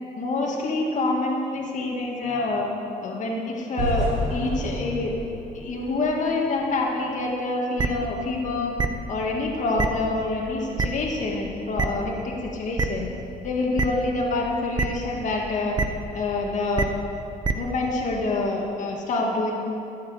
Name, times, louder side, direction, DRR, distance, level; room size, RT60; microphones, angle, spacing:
voice 1, 0.2-2.7 3.0-5.1 5.5-8.7 9.1-13.1 13.4-15.8 16.1-16.9 17.5-19.5, left 2 dB, 45° left, -2 dB, 2.2 m, -26 dB
sound 1, 3.8-6.8, equal, 80° right, 4.1 m, -30 dB
sound 2, 7.8-7.9 8.8-8.9 9.8-9.9 10.8-10.9 11.8-11.9 12.8-12.9 13.8-13.9 14.8-14.9 15.8-15.9 16.8-16.9 17.4-17.5, right 4 dB, 25° right, 0.9 m, -22 dB
13.0 x 8.2 x 8.5 m, 2.7 s
cardioid pair, 110°, 17 cm